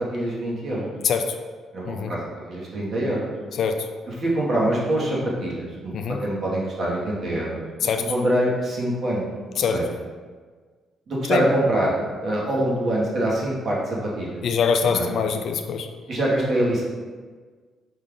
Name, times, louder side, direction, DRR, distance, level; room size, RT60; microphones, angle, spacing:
voice 1, 0.1-0.9 1.7-2.2 2.5-3.3 4.1-5.9 6.2-9.3 9.5-9.9 11.1-14.4 14.9-15.1 16.1-16.8, right 1 dB, 50° right, -5 dB, 1.4 m, -24 dB
voice 2, 14.4-15.9, left 6 dB, 70° left, 6 dB, 0.3 m, -23 dB
5.2 x 2.5 x 3.7 m, 1.5 s
cardioid pair, 90°, 0 cm